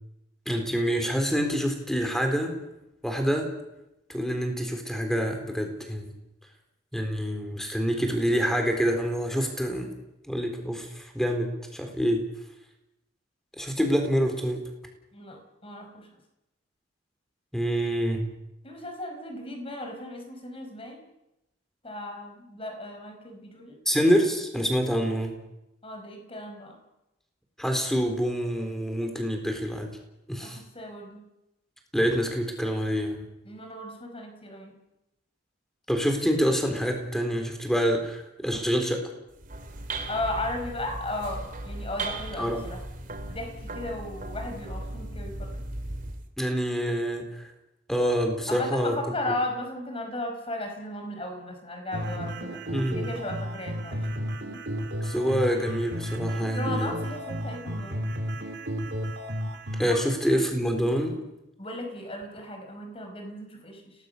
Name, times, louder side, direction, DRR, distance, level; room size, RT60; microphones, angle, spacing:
voice 1, 0.5-2.5 3.0-3.5 4.1-6.1 6.9-9.9 10.3-12.2 13.6-14.6 17.5-18.3 23.9-25.3 27.6-29.9 30.3-30.6 31.9-33.3 35.9-39.0 42.4-42.6 46.4-47.5 47.9-49.0 52.7-53.1 55.0-57.0 59.8-61.2, equal, ahead, 4 dB, 4.0 m, -26 dB
voice 2, 15.1-16.1 18.6-21.0 21.8-23.8 25.8-26.8 30.4-31.2 33.4-34.7 40.1-42.8 43.3-45.6 48.5-54.3 56.5-58.1 59.8-60.0 60.3-60.4 61.6-63.9, left 1 dB, 30° left, 4 dB, 5.1 m, -36 dB
sound 1, 39.3-46.3, right 2 dB, 45° right, 2.8 m, -37 dB
sound 2, 51.9-59.9, equal, 65° right, 3.6 m, -33 dB
29.5 x 18.5 x 6.8 m, 0.90 s
head